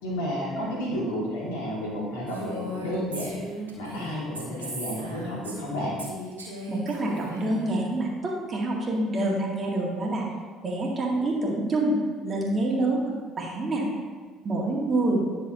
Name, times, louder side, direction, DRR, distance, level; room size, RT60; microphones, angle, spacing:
voice 1, 0.0-3.4 3.8-6.0, equal, 75° left, -5 dB, 2.3 m, -31 dB
Female speech woman speaking, 2.3-5.7 6.0-7.8, equal, 90° right, 1.3 m, -37 dB
voice 2, 6.7-10.2 10.6-12.0 12.2-13.0 13.4-13.8 14.4-15.2, right 2 dB, 35° right, -2 dB, 2.0 m, -26 dB
10.5 x 6.4 x 2.8 m, 1.5 s
hypercardioid pair, 55°, 0 cm